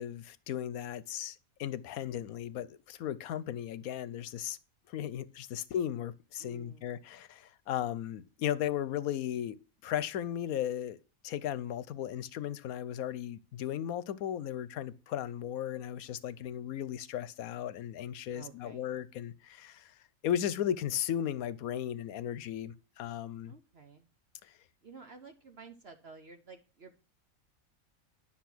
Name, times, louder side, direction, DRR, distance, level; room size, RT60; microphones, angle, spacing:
voice 1, 0.0-4.6 4.9-9.6 9.8-11.0 11.2-19.9 20.2-23.5, left 10 dB, 80° left, 1.1 m, -36 dB
voice 2, 6.4-7.0 18.3-18.9 23.4-24.1 24.8-27.0, right 4 dB, 50° right, 1.1 m, -52 dB
10.0 x 5.9 x 6.1 m
omnidirectional pair, 1.5 m